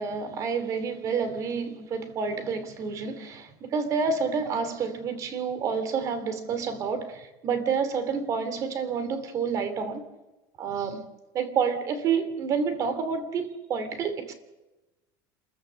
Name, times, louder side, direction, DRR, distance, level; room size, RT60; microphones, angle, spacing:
voice 1, 0.0-10.0 10.6-11.0 11.3-14.3, right 5 dB, 35° right, 2.6 m, -29 dB
27.5 x 14.5 x 7.4 m
cardioid pair, 155°, 9 cm